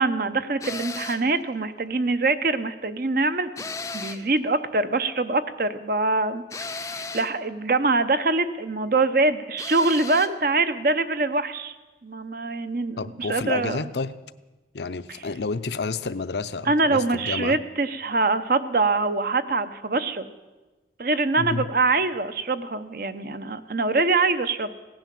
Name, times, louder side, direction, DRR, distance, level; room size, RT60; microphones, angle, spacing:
voice 1, 0.0-3.5 3.9-6.4 6.7-11.7 12.0-13.8 16.7-20.3 21.0-24.7, right 3 dB, 50° right, 11 dB, 0.8 m, -24 dB
sound 1, 0.6-1.3 3.6-4.3 6.5-7.4 9.6-10.4, left 4 dB, 15° left, 0.5 m, -35 dB
voice 2, 13.0-14.1 14.7-17.6 21.4-21.7, left 4 dB, 75° left, 13 dB, 0.6 m, -30 dB
16.5 x 10.5 x 7.6 m, 1.2 s
head